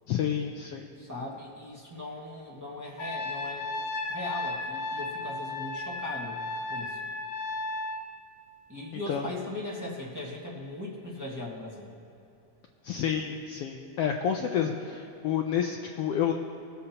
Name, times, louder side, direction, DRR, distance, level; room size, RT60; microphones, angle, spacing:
voice 1, 0.1-0.9 9.1-9.2 12.8-16.3, left 8 dB, 90° left, 3 dB, 1.3 m, -29 dB
voice 2, 1.0-3.7 4.1-6.4 6.7-7.0 8.7-11.9, left 1 dB, 10° right, -4 dB, 0.8 m, -39 dB
Trumpet, 3.0-8.1, left 2 dB, 70° left, 2.1 m, -34 dB
22.5 x 8.1 x 2.9 m, 2.9 s
omnidirectional pair, 3.4 m